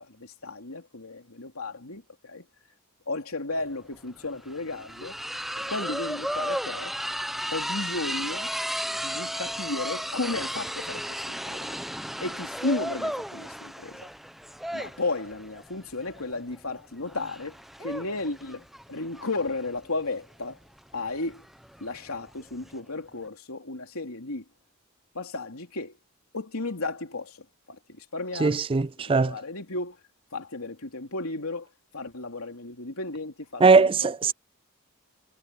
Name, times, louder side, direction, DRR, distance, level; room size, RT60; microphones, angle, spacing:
voice 1, 0.0-2.4 3.1-5.2 5.6-6.9 7.5-8.5 9.0-11.8 12.2-14.1 14.7-20.6 20.9-21.5 21.8-24.4 25.1-26.0 26.3-28.9 29.1-30.0 30.3-34.1, left 2 dB, 85° left, 3.3 m, -34 dB
sound 1, 3.6-3.7 3.9-22.8, equal, ahead, 1.0 m, -35 dB
voice 2, 28.4-29.3 33.6-34.3, right 4 dB, 25° right, 0.4 m, -20 dB
head